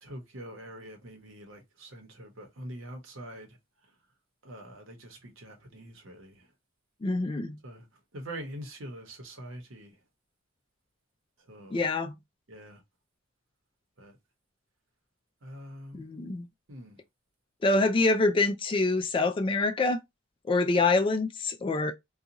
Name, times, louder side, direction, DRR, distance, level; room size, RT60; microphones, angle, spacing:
voice 1, 0.0-3.5 4.4-6.5 7.6-7.9 8.1-9.9 11.5-11.8 12.5-12.8 14.0-14.2 15.4-16.0 16.7-17.0, right 1 dB, 75° right, 1.0 m, -44 dB
voice 2, 7.0-7.6 11.7-12.2 15.9-16.5 17.6-20.0 20.5-21.9, left 3 dB, 25° left, 0.3 m, -26 dB
2.6 x 2.3 x 2.8 m
head